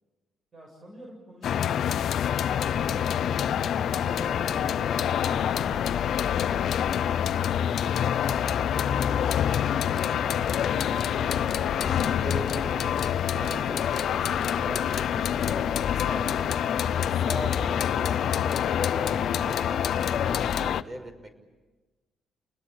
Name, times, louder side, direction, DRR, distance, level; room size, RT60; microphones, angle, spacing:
voice 1, 0.5-3.8 4.1-7.2 7.7-10.7 16.9-17.3, right 1 dB, 45° right, 0 dB, 7.3 m, -47 dB
sound 1, 1.4-20.8, left 9 dB, 70° left, 0.8 m, -26 dB
sound 2, 2.6-20.6, left 1 dB, 5° right, 2.7 m, -40 dB
voice 2, 11.8-21.4, equal, 30° right, 6 dB, 5.9 m, -41 dB
29.5 x 20.5 x 8.6 m, 1.2 s
cardioid pair, 90°, 0 cm